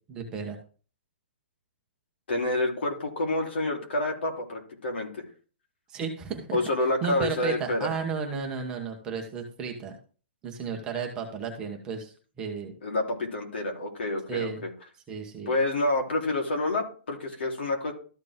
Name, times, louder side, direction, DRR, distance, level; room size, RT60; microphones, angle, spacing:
voice 1, 0.1-0.6 5.9-6.6 7.0-9.9 10.4-12.7 14.3-14.6 15.1-15.5, right 5 dB, 10° right, 2 dB, 1.1 m, -33 dB
voice 2, 2.3-5.2 6.5-7.9 12.8-14.7 15.4-17.9, left 2 dB, 75° left, 1 dB, 3.3 m, -28 dB
13.5 x 4.7 x 3.6 m, 0.39 s
hypercardioid pair, 175°, 6 cm